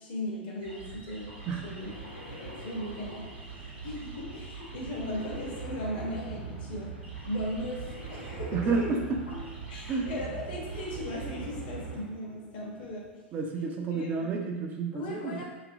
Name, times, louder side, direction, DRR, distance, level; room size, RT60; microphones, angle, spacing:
voice 1, 0.0-1.9 2.6-3.3 3.8-7.0 7.2-8.9 9.7-13.1 13.9-14.3 14.9-15.4, left 1 dB, 55° left, -3 dB, 0.8 m, -37 dB
sound 1, 0.6-12.0, right 6 dB, 85° right, 0.7 m, -42 dB
sound 2, 1.4-13.1, left 1 dB, 85° left, 0.5 m, -47 dB
voice 2, 8.5-9.2 9.9-10.1 13.3-15.4, right 4 dB, 30° right, 2 dB, 0.3 m, -30 dB
2.6 x 2.5 x 2.7 m, 1.2 s
figure-of-eight pair, 90°, 6 cm